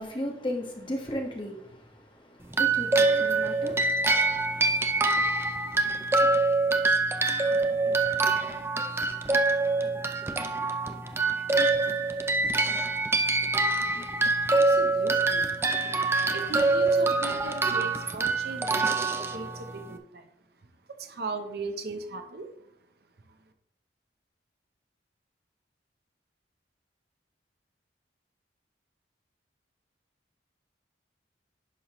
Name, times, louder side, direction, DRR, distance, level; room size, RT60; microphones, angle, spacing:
voice 1, 0.0-5.3, left 1 dB, 25° left, 1.4 m, -37 dB
sound 1, 2.5-19.9, right 3 dB, 15° right, 0.4 m, -25 dB
voice 2, 13.0-20.3 21.0-22.5, right 3 dB, 55° right, 0.8 m, -39 dB
10.0 x 5.7 x 3.1 m
head